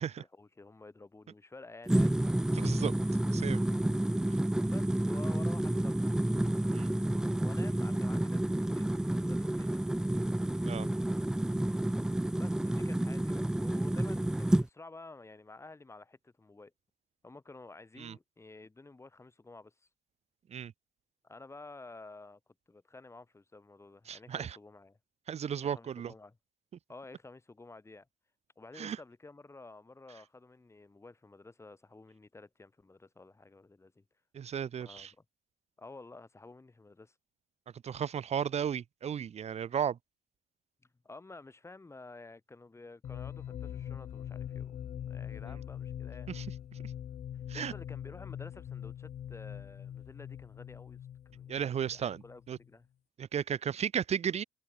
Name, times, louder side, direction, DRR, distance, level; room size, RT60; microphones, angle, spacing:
voice 1, 0.2-2.3 4.7-6.0 7.4-9.9 12.4-16.7 17.2-19.7 21.2-22.4 22.7-25.0 25.6-26.4 26.9-28.1 28.6-34.0 34.8-35.1 35.8-37.1 41.0-44.8 45.1-46.3 47.5-51.0 51.2-51.5 51.9-52.9, left 3 dB, 15° left, 4.8 m, -51 dB
sound 1, 1.9-14.7, right 1 dB, 5° right, 0.4 m, -30 dB
voice 2, 2.5-2.9 3.3-3.6 6.7-6.9 10.6-10.9 18.0-18.1 20.5-20.7 24.1-24.6 25.3-26.1 28.8-29.0 34.3-35.1 37.8-40.0 46.3-46.4 47.5-47.7 51.5-52.6 53.2-54.4, right 8 dB, 40° right, 1.0 m, -34 dB
sound 2, 43.0-52.7, left 10 dB, 45° left, 0.8 m, -43 dB
cardioid pair, 110°, 17 cm